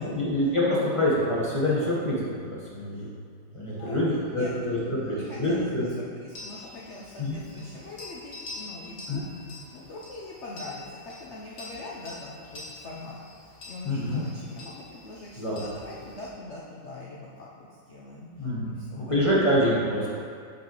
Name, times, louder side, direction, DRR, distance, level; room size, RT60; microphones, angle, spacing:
voice 1, 0.0-3.1 3.5-5.8 7.2-7.4 9.1-9.3 13.8-14.2 15.4-15.6 18.4-20.1, left 1 dB, 20° left, -7 dB, 1.0 m, -26 dB
voice 2, 3.5-9.3 9.7-19.4, left 2 dB, 75° left, -5 dB, 0.6 m, -43 dB
sound 1, 6.3-16.3, left 2 dB, 50° left, 1.7 m, -45 dB
8.6 x 5.3 x 3.1 m, 2.1 s
omnidirectional pair, 2.2 m